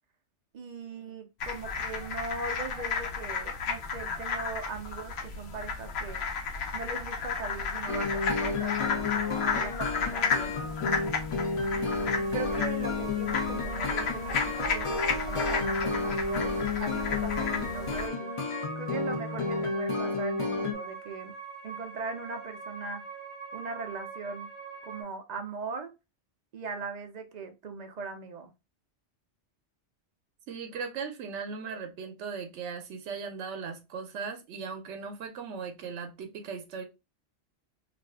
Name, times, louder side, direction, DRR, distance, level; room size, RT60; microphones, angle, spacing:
voice 1, 0.5-6.2 6.7-11.0 11.7-16.5 16.8-18.3 18.8-21.3 21.6-23.0 23.5-24.5 24.8-25.9 26.5-28.5, right 4 dB, 60° right, 0.4 m, -39 dB
sound 1, 1.4-18.1, left 5 dB, 70° left, 0.9 m, -33 dB
sound 2, 7.9-20.7, left 4 dB, 50° left, 0.3 m, -32 dB
sound 3, 12.0-25.0, right 5 dB, 30° left, 0.7 m, -43 dB
voice 2, 30.5-36.8, right 5 dB, 85° right, 0.9 m, -38 dB
2.5 x 2.4 x 3.3 m
omnidirectional pair, 1.2 m